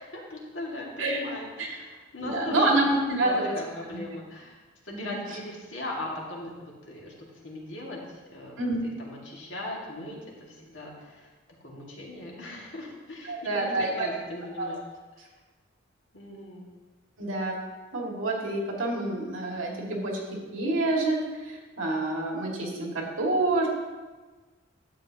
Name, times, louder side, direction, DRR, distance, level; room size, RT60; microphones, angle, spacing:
voice 1, 0.1-2.8 3.2-4.6 4.9-6.5 6.9-7.1 7.4-8.0 8.3-8.6 8.8-11.3 11.6-14.8 16.1-16.7, left 1 dB, 65° left, -2 dB, 2.0 m, -39 dB
voice 2, 2.2-3.6 3.9-4.0 4.9-5.2 8.6-8.8 13.2-14.1 14.6-14.7 17.2-17.5 17.9-20.2 20.5-21.2 21.5-23.7, right 2 dB, 90° right, -1 dB, 2.1 m, -27 dB
12.0 x 7.9 x 2.8 m, 1.3 s
head